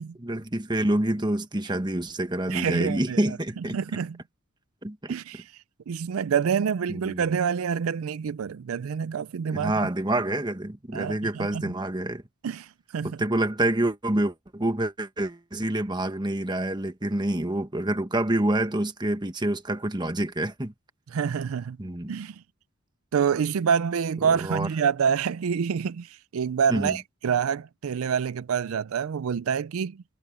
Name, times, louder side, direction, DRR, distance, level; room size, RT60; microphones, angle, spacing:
voice 1, 0.2-3.8 4.8-5.1 6.9-7.2 9.5-12.2 13.0-20.7 21.8-22.1 24.4-24.7 26.7-27.0, right 1 dB, 20° right, 1.3 m, -27 dB
voice 2, 2.5-3.4 3.7-4.2 5.1-5.4 5.9-9.7 10.9-11.7 12.4-13.2 21.1-21.8 22.1-22.4 23.1-30.0, right 7 dB, 80° right, 0.4 m, -27 dB
head